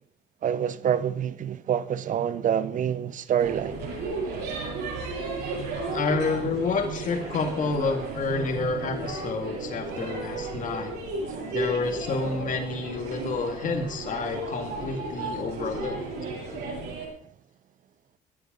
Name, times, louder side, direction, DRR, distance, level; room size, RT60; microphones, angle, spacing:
voice 1, 0.4-3.8 11.3-11.5, right 9 dB, 50° right, 0.9 m, -27 dB
sound 1, 3.4-17.1, right 3 dB, 85° right, 6.8 m, -34 dB
voice 2, 5.9-10.9 11.5-16.0, left 4 dB, 50° left, 2.4 m, -29 dB
23.5 x 10.0 x 4.0 m
cardioid pair, 110°, 17 cm